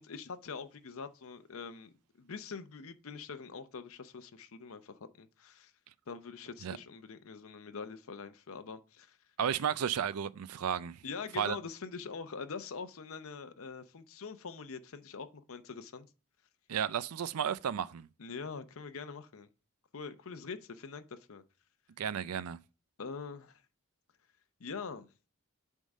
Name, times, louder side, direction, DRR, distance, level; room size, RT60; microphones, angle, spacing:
voice 1, 0.0-5.7 6.1-9.2 11.0-16.1 18.2-19.5 19.9-21.4 23.0-23.6 24.6-25.1, left 5 dB, 75° left, 0.7 m, -44 dB
voice 2, 9.4-11.0 11.4-11.6 16.7-18.1 22.0-22.6, right 8 dB, 85° right, 0.4 m, -33 dB
8.2 x 3.6 x 5.3 m
head